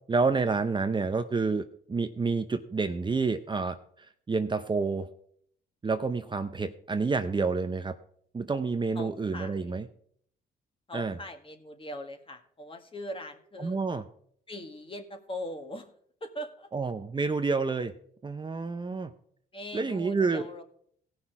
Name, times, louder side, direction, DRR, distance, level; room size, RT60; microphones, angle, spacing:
voice 1, 0.1-5.1 5.8-8.0 8.3-9.8 10.9-11.2 13.6-14.0 16.7-17.9 18.2-19.1 19.7-20.5, right 4 dB, 25° right, 8 dB, 0.7 m, -29 dB
voice 2, 8.9-9.7 10.9-13.8 14.5-15.9 16.2-16.7 19.5-20.6, left 1 dB, 25° left, 5 dB, 1.8 m, -41 dB
17.0 x 5.8 x 4.8 m, 0.62 s
cardioid pair, 90°, 20 cm